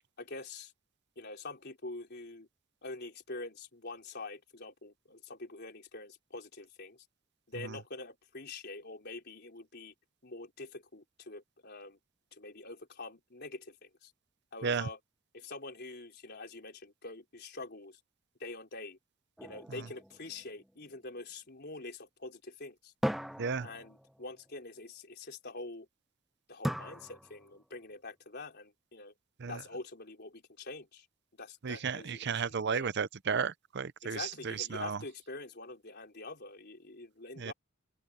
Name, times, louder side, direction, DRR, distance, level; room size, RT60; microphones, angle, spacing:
voice 1, 0.2-0.7 1.2-2.5 2.8-7.1 7.5-9.9 10.2-12.0 12.3-14.1 14.5-15.0 15.3-18.0 18.4-19.0 19.4-22.9 23.6-25.9 26.5-29.1 29.5-31.1 31.3-32.9 34.0-37.5, left 3 dB, 55° left, 3.9 m, -45 dB
sound 1, 19.4-21.0 23.0-24.4 26.6-27.7, equal, ahead, 0.8 m, -38 dB
voice 2, 31.6-35.0 37.4-37.5, right 6 dB, 55° right, 0.6 m, -34 dB
open air
head